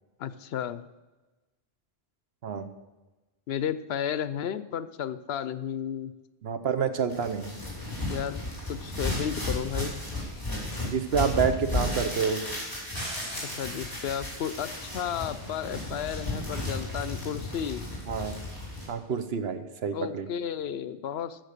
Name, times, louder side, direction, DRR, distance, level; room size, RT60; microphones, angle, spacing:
voice 1, 0.2-0.8 3.5-6.1 8.1-8.4 8.7-9.9 13.6-17.8 19.9-21.4, left 9 dB, 80° left, 14 dB, 0.8 m, -33 dB
voice 2, 6.4-7.5 10.8-12.4 18.1-18.4 18.9-20.3, right 6 dB, 75° right, 9 dB, 1.1 m, -28 dB
sound 1, 7.1-18.9, left 2 dB, 20° left, 4.5 m, -34 dB
sound 2, 12.9-18.1, equal, 25° right, 2.5 m, -45 dB
14.0 x 6.6 x 6.6 m, 1.1 s
omnidirectional pair, 1.1 m